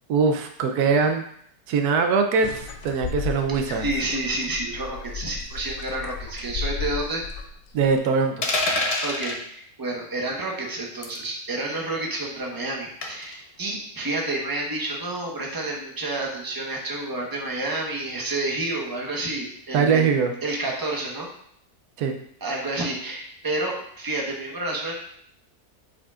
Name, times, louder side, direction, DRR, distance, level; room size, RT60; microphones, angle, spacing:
voice 1, 0.1-1.2 1.7-3.8 7.7-8.4 19.7-20.3 22.0-22.2, right 5 dB, 85° right, 5 dB, 1.1 m, -22 dB
sound 1, 2.4-8.0, left 6 dB, 70° left, 1.0 m, -34 dB
voice 2, 3.7-7.2 9.0-20.1 20.4-21.3 22.4-24.9, right 2 dB, 15° right, -1 dB, 1.0 m, -29 dB
sound 2, 8.4-9.4 11.0-11.3 13.0-13.3, left 2 dB, 40° left, 0.5 m, -25 dB
8.2 x 5.1 x 2.4 m, 0.67 s
omnidirectional pair, 1.6 m